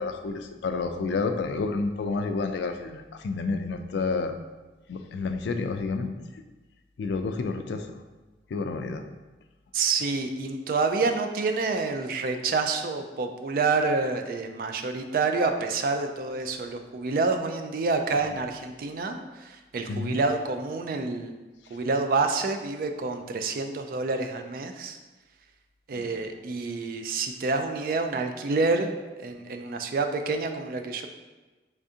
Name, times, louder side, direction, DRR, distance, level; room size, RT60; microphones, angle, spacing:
voice 1, 0.0-4.3 4.9-6.4 7.0-8.0 8.5-9.0 18.3-18.4 19.9-20.2, left 4 dB, 80° left, 7 dB, 0.3 m, -30 dB
voice 2, 9.7-21.3 21.7-25.0 25.9-29.0 29.2-31.1, right 3 dB, 50° right, 6 dB, 0.3 m, -28 dB
3.6 x 3.3 x 2.7 m, 1.2 s
head